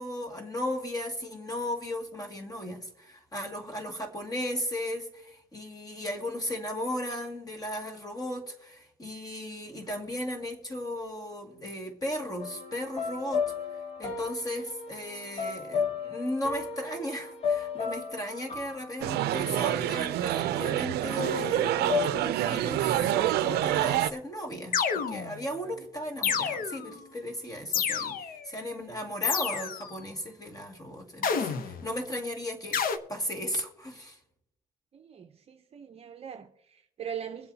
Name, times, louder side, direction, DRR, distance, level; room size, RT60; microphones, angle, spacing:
voice 1, 0.0-13.5 14.0-34.2, equal, 20° left, 2.2 m, -36 dB
sound 1, 12.4-20.4 21.2-22.1, left 5 dB, 40° left, 2.2 m, -34 dB
sound 2, 19.0-24.1, right 13 dB, 75° right, 0.5 m, -27 dB
sound 3, 24.7-25.5 26.2-27.0 27.7-28.4 29.2-29.9 31.2-31.9 32.7-33.0, left 7 dB, 55° left, 0.9 m, -29 dB
voice 2, 34.9-37.5, right 8 dB, 35° right, 0.7 m, -41 dB
23.5 x 8.0 x 2.8 m
cardioid pair, 110°, 17 cm